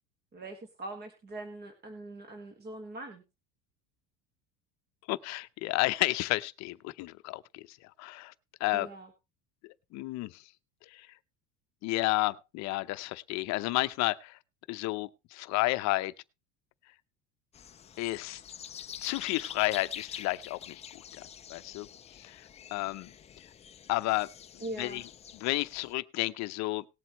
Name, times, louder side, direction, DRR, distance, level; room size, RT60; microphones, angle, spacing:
voice 1, 0.3-3.2 8.7-9.1 24.6-25.1, right 2 dB, 30° right, 1.7 m, -42 dB
voice 2, 5.1-8.3 8.6-8.9 9.6-10.4 10.9-11.1 11.8-14.4 14.7-16.1 18.0-18.4 19.0-21.9 22.2-23.1 23.9-24.3 24.8-25.0 25.3-26.9, left 20 dB, 50° left, 0.7 m, -32 dB
sound 1, 17.5-25.9, left 8 dB, 20° left, 0.5 m, -46 dB
18.5 x 7.7 x 3.1 m
cardioid pair, 145°, 35 cm